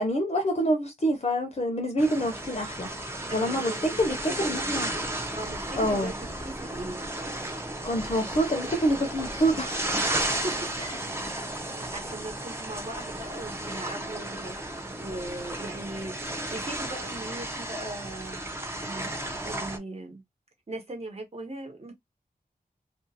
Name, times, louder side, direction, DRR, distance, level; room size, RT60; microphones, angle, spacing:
voice 1, 0.0-2.9 3.3-4.9 5.8-6.1 7.8-9.8 10.8-10.9, equal, 40° left, 0.7 m, -26 dB
sound 1, 2.0-19.8, right 1 dB, 15° right, 0.7 m, -34 dB
voice 2, 3.3-4.4 5.3-7.0 10.4-10.8 11.6-18.4 18.8-20.2 20.7-21.9, right 2 dB, 40° right, 1.1 m, -39 dB
2.5 x 2.4 x 2.7 m
wide cardioid pair, 95°, 16 cm